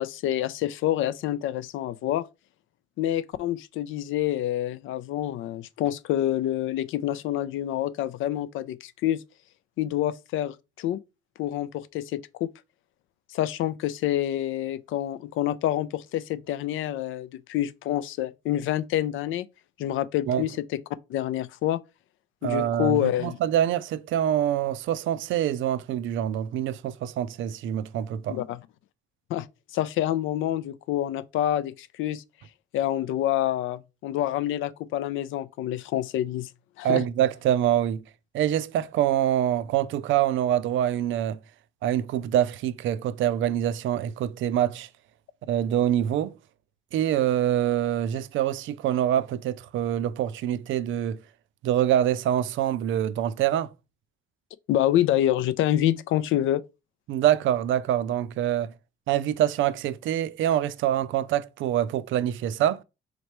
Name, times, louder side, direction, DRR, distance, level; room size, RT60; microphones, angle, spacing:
voice 1, 0.0-2.3 3.0-9.2 9.8-11.0 11.4-12.5 13.3-19.5 19.8-20.8 21.1-21.8 22.4-23.4 28.3-28.6 29.3-29.5 29.7-32.2 32.7-36.5 36.8-37.0 54.7-56.6, left 12 dB, 80° left, 0.4 m, -27 dB
voice 2, 22.4-28.4 36.8-38.0 38.3-41.4 41.8-44.9 45.5-46.4 46.9-51.2 51.6-53.7 57.1-58.7 59.1-62.8, right 11 dB, 80° right, 0.4 m, -25 dB
4.0 x 3.3 x 3.0 m
cardioid pair, 90°, 20 cm